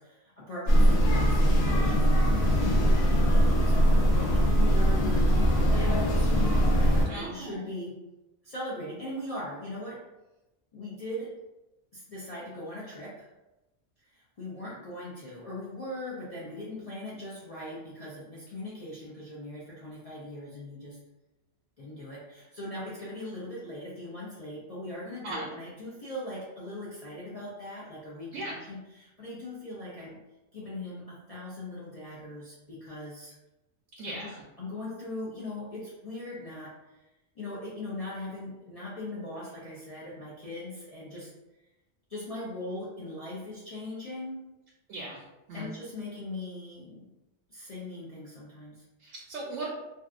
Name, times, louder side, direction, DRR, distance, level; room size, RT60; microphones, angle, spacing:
voice 1, 0.0-6.5 7.1-8.0 8.4-10.1 10.7-11.4 11.9-13.3 14.0-21.0 21.8-30.2 30.5-33.4 34.1-36.8 37.4-41.3 42.1-44.6 45.5-47.1 47.5-48.8, left 1 dB, 50° left, -7 dB, 0.5 m, -40 dB
sound 1, 0.7-7.1, equal, 65° left, 0.8 m, -22 dB
voice 2, 7.0-7.6 25.2-25.5 28.3-28.5 34.0-34.4 44.9-45.2 45.5-45.7 49.0-49.7, right 2 dB, 85° right, -3 dB, 0.9 m, -37 dB
2.6 x 2.3 x 2.4 m, 0.98 s
omnidirectional pair, 1.2 m